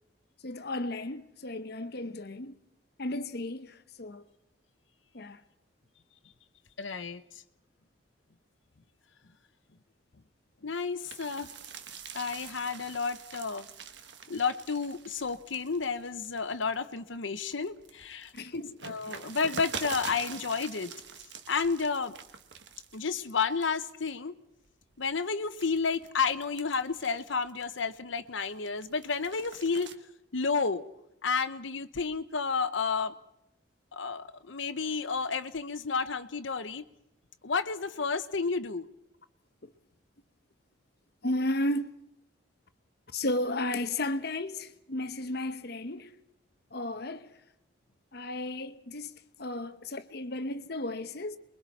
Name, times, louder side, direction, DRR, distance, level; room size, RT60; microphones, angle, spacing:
voice 1, 0.4-2.6 3.0-4.2 5.1-5.4 18.3-18.8 39.6-39.7 41.2-41.9 43.1-46.1 46.7-47.3 48.1-51.4, left 1 dB, 55° left, 1.0 m, -34 dB
voice 2, 6.8-7.2 10.6-11.5 12.1-13.7 14.3-18.3 18.8-21.0 21.5-22.1 22.9-24.3 25.0-30.0 30.3-30.9 31.2-33.1 33.9-36.8 37.4-38.9, left 5 dB, 80° left, 0.9 m, -31 dB
sound 1, 11.0-17.0 17.4-23.3 23.6-24.1 24.7-28.0 28.4-29.9, right 6 dB, 65° right, 1.3 m, -45 dB
28.5 x 22.5 x 4.2 m
head